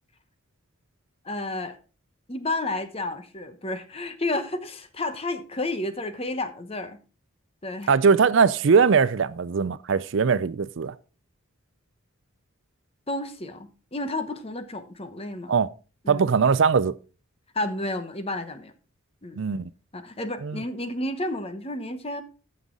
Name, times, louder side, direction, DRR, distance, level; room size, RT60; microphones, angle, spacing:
voice 1, 1.2-1.8 2.3-7.0 7.6-8.0 13.1-15.5 16.0-16.2 17.5-18.7 19.2-19.4 19.9-22.2, left 2 dB, 25° left, 0.9 m, -31 dB
voice 2, 7.9-10.9 15.5-15.7 16.1-16.9 19.4-19.7 20.4-20.6, right 5 dB, 60° right, 0.4 m, -21 dB
14.5 x 5.5 x 3.8 m
head